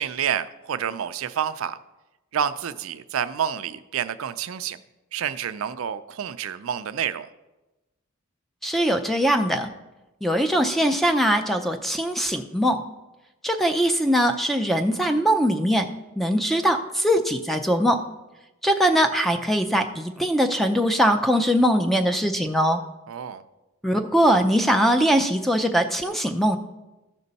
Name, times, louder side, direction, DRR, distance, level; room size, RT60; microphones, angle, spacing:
voice 1, 0.0-1.8 2.3-4.8 5.1-7.3 23.1-23.4, right 8 dB, 80° right, 12 dB, 0.4 m, -28 dB
voice 2, 8.6-9.7 10.2-12.8 13.4-15.9 16.2-18.0 18.6-22.8 23.8-26.6, equal, ahead, 6 dB, 0.5 m, -21 dB
14.5 x 5.3 x 4.0 m, 1.0 s
head